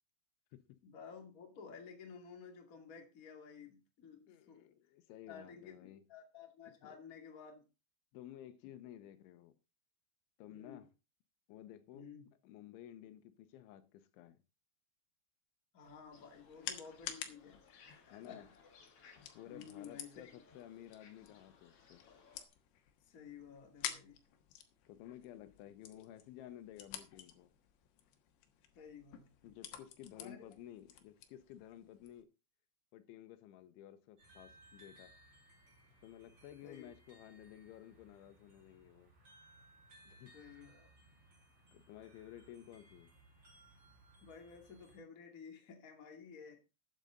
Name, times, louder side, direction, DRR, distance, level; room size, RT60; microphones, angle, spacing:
voice 1, 0.8-4.7 5.3-7.6 10.5-10.8 11.9-12.3 15.7-18.4 19.5-20.4 23.1-24.2 28.7-29.6 30.1-30.4 36.6-36.9 40.3-40.9 44.2-46.6, left 6 dB, 30° left, 1.6 m, -53 dB
voice 2, 4.3-6.0 6.8-7.0 8.1-9.5 10.4-10.9 11.5-12.1 12.4-14.4 18.1-18.5 19.3-22.1 24.9-27.5 29.4-32.3 32.9-35.1 36.0-39.1 40.0-40.4 41.7-43.2, left 12 dB, 90° left, 3.4 m, -54 dB
sound 1, 15.8-32.2, left 10 dB, 75° left, 3.4 m, -51 dB
sound 2, 16.1-22.4, left 5 dB, 50° left, 1.9 m, -64 dB
sound 3, 34.2-45.0, right 1 dB, 30° right, 5.1 m, -63 dB
13.0 x 9.0 x 3.9 m
omnidirectional pair, 5.3 m